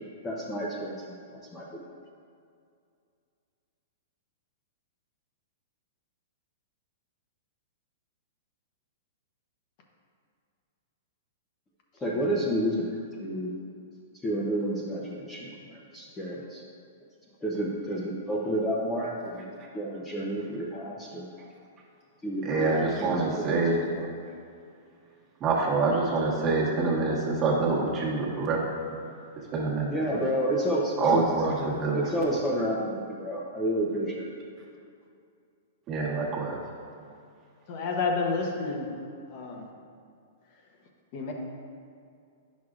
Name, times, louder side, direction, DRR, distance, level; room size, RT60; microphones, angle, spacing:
voice 1, 0.2-1.0 1.5-1.9 12.0-12.9 13.2-13.5 14.2-16.6 17.4-19.5 19.7-21.3 22.2-23.6 23.9-24.1 29.9-31.2 31.9-34.3, equal, 15° left, -5 dB, 0.7 m, -30 dB
voice 2, 22.4-23.8 25.4-28.8 29.5-30.0 31.0-32.1 35.9-36.6, right 3 dB, 25° right, -4 dB, 1.3 m, -26 dB
voice 3, 37.7-38.9 39.3-39.7 41.1-41.3, left 4 dB, 45° left, 0 dB, 0.9 m, -29 dB
9.1 x 6.3 x 2.5 m, 2.4 s
hypercardioid pair, 140°, 0 cm